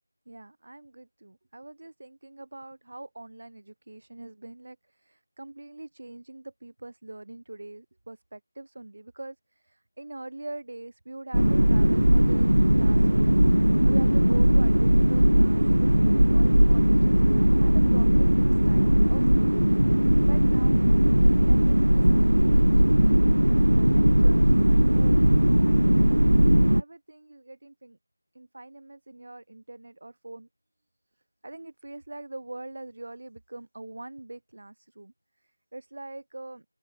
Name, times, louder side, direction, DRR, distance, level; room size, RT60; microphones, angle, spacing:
voice 1, 0.3-19.7 20.2-20.8 21.2-23.3 23.7-26.2 26.6-28.0 28.3-30.5 31.4-36.6, right 2 dB, 45° right, 4.9 m, -43 dB
sound 1, 11.3-26.8, right 1 dB, 75° right, 0.8 m, -19 dB
open air
figure-of-eight pair, 170°, 0 cm